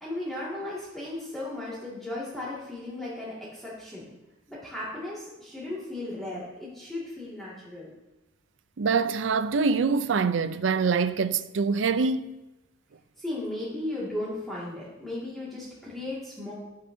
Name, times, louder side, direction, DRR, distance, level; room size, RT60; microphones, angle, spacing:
voice 1, 0.0-4.1 4.5-7.9 13.2-16.5, left 1 dB, ahead, 2.0 m, -36 dB
voice 2, 8.8-12.3, right 5 dB, 75° right, 0.5 m, -25 dB
14.5 x 6.5 x 2.7 m
head